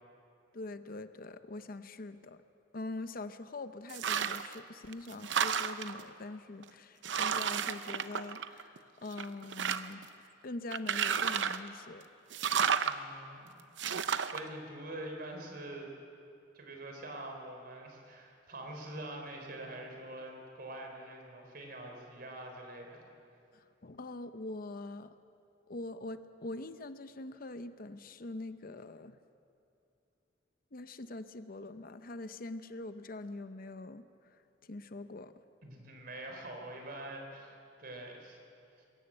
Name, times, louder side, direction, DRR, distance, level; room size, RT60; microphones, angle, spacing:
voice 1, 0.5-2.4 2.7-12.1 23.5-25.1 25.7-29.2 30.7-34.0 34.6-35.3, left 2 dB, 50° left, 11 dB, 0.7 m, -43 dB
sound 1, 3.9-4.5 4.9-6.0 6.6-6.7 7.0-8.8 9.1-10.0 10.7-11.7 12.3-12.9 13.8-14.4, right 7 dB, 70° right, 0.7 m, -32 dB
voice 2, 12.8-13.5 14.3-15.9 16.5-23.1 35.6-38.4, right 1 dB, 55° right, 2 dB, 3.9 m, -45 dB
22.5 x 14.0 x 9.0 m, 2.6 s
head